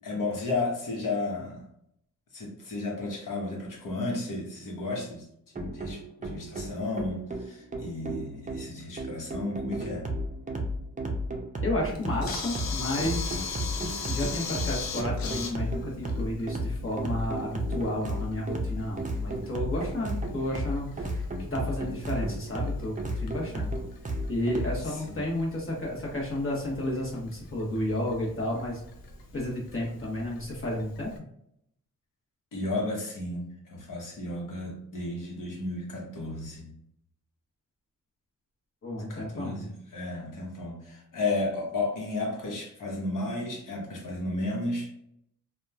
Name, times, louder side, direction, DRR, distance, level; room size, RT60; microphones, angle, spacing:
voice 1, 0.0-1.6 2.3-5.2 5.6-10.1 24.9-25.2 32.5-36.8 39.1-44.9, left 2 dB, 65° left, -1 dB, 1.0 m, -33 dB
sound 1, 5.5-24.8, right 1 dB, 25° right, 0.5 m, -33 dB
voice 2, 11.6-13.2 13.8-21.2 21.5-23.7 24.3-28.8 29.3-31.1 38.8-39.7, left 1 dB, 40° left, -3 dB, 1.2 m, -32 dB
Camera, 11.8-31.2, left 4 dB, 90° left, 0.6 m, -41 dB
2.8 x 2.3 x 2.3 m, 0.72 s
cardioid pair, 80°, 34 cm